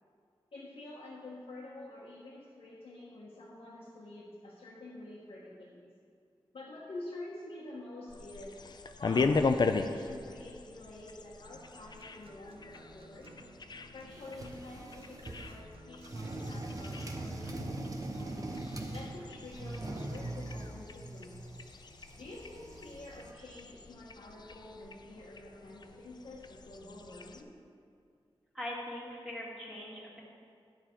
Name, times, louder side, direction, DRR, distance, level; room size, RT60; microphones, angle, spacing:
voice 1, 0.5-5.8 6.5-8.6 9.0-13.4 13.9-18.5 18.9-21.5 22.2-27.5, left 2 dB, 80° left, -6 dB, 1.3 m, -48 dB
sound 1, 8.1-27.4, left 4 dB, 50° left, 0.4 m, -38 dB
Acoustic guitar, 11.5-19.5, right 2 dB, 75° right, 0.9 m, -57 dB
sound 2, 14.1-15.6 16.0-19.2 19.5-23.3, right 2 dB, 35° right, 0.8 m, -41 dB
voice 2, 28.5-30.2, left 1 dB, 5° right, -6 dB, 1.9 m, -41 dB
10.5 x 6.9 x 4.4 m, 2.3 s
wide cardioid pair, 105°, 10 cm